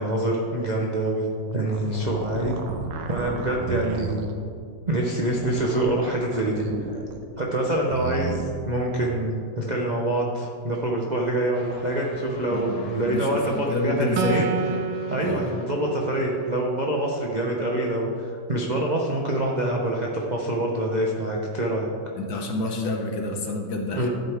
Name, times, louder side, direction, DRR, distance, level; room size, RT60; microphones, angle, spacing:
voice 1, 0.0-2.6 2.9-4.3 4.9-7.0 7.4-8.4 8.7-14.5 15.1-21.9 23.9-24.1, right 1 dB, 40° right, -2 dB, 0.6 m, -26 dB
sound 1, 1.5-4.3 5.0-7.2 7.5-8.4, right 5 dB, 70° right, 1.5 m, -34 dB
sound 2, 11.5-16.7, left 2 dB, 85° left, 1.9 m, -45 dB
voice 2, 12.5-14.5 15.2-15.5 22.2-24.1, left 2 dB, 60° left, 3 dB, 1.4 m, -28 dB
Acoustic guitar, 14.2-17.6, right 5 dB, 85° right, 1.4 m, -31 dB
13.5 x 7.8 x 3.5 m, 2.3 s
omnidirectional pair, 2.1 m